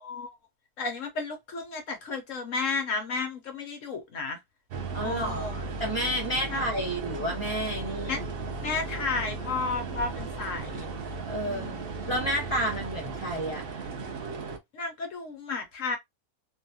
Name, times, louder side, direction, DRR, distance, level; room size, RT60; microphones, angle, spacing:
voice 1, 0.8-4.4 5.0-5.6 6.5-6.6 8.1-8.2 8.6-10.9 11.4-12.1 14.7-16.0, left 4 dB, 65° left, 0.9 m, -33 dB
sound 1, 4.7-14.6, right 3 dB, 75° right, 0.5 m, -36 dB
voice 2, 4.9-8.2 11.2-13.6, equal, 30° right, 0.5 m, -31 dB
2.7 x 2.3 x 2.6 m
omnidirectional pair, 1.7 m